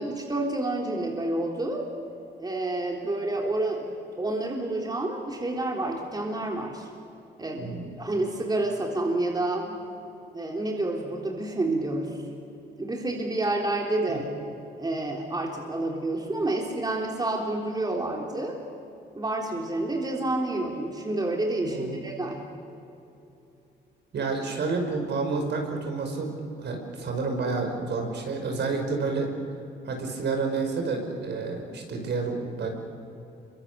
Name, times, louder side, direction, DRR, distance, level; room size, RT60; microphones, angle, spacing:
voice 1, 0.0-1.8 2.4-6.9 7.4-7.7 8.0-9.7 10.3-12.2 12.8-14.3 14.8-18.6 19.1-22.4, right 2 dB, 20° right, 0 dB, 3.6 m, -29 dB
voice 2, 7.6-7.9 9.6-9.8 14.1-14.2 21.6-22.0 24.1-29.3 29.9-32.7, right 4 dB, 60° right, 3 dB, 5.4 m, -30 dB
26.5 x 23.5 x 6.9 m, 2.8 s
cardioid pair, 90°, 20 cm